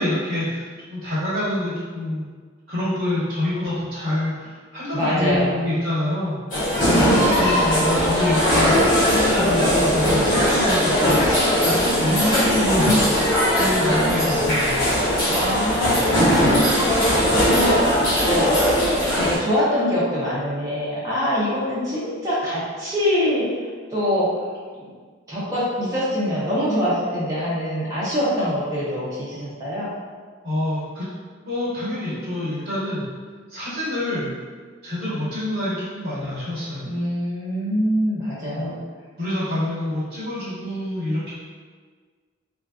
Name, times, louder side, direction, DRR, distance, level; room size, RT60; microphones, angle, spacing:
voice 1, 0.0-2.3 2.7-6.4 7.3-8.8 9.1-12.2 12.5-13.1 13.5-14.9 30.4-31.1 31.4-33.0 33.5-34.3 34.8-36.9 38.5-38.7 39.2-41.3, left 1 dB, 50° right, -11 dB, 1.3 m, -26 dB
voice 2, 4.9-5.6 6.8-7.4 11.6-12.9 15.3-17.8 18.2-18.6 19.1-24.5 25.3-29.9 36.8-38.8, equal, 15° right, -9 dB, 0.6 m, -24 dB
sound 1, 6.5-19.4, equal, 40° left, 0.9 m, -19 dB
3.2 x 2.4 x 2.3 m, 1.5 s
head